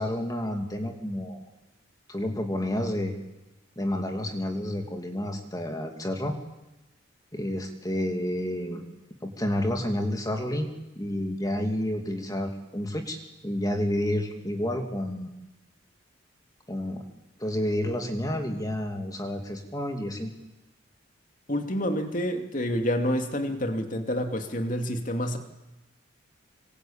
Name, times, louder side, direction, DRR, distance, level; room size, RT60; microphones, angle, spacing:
voice 1, 0.0-1.4 2.1-3.1 3.8-6.3 7.3-8.8 9.2-10.7 11.0-13.2 13.4-15.4 16.7-17.1 17.4-20.3, left 1 dB, 20° left, 4 dB, 2.4 m, -30 dB
voice 2, 21.5-25.4, equal, 40° left, 6 dB, 2.7 m, -28 dB
26.5 x 25.0 x 8.8 m, 0.99 s
head